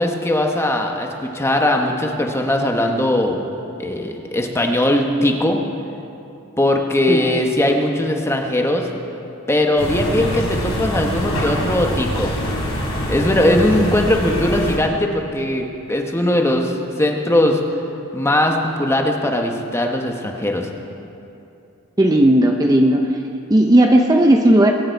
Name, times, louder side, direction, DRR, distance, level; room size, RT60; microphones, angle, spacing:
voice 1, 0.0-3.4 3.8-5.6 6.6-8.9 9.5-12.3 13.1-17.6 18.1-20.7, left 1 dB, 10° left, 2 dB, 1.1 m, -19 dB
ambiance sonore magasin, 9.8-14.8, equal, 80° left, 3.5 m, -24 dB
voice 2, 22.0-23.1 23.5-24.7, right 1 dB, 15° right, 2 dB, 0.6 m, -14 dB
22.0 x 9.5 x 4.6 m, 2.7 s
head